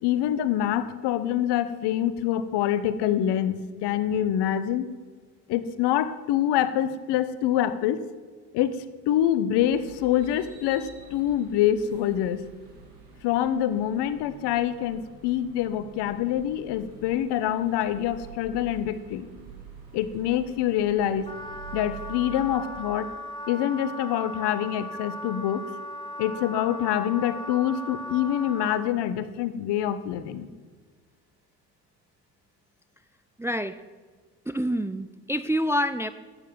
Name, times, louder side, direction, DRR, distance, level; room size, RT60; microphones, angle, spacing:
voice 1, 0.0-4.9 5.5-8.0 8.5-12.5 13.2-19.3 19.9-21.3 21.7-23.1 23.5-25.6 26.2-30.5, left 11 dB, 55° left, 13 dB, 1.1 m, -26 dB
sound 1, 9.6-22.6, right 5 dB, 80° right, 3.2 m, -47 dB
Wind instrument woodwind instrument, 21.2-28.8, equal, 10° left, 2.4 m, -38 dB
voice 2, 33.4-33.8 34.5-36.1, equal, 5° right, 12 dB, 0.5 m, -27 dB
12.5 x 9.0 x 7.6 m, 1.5 s
hypercardioid pair, 60°, 48 cm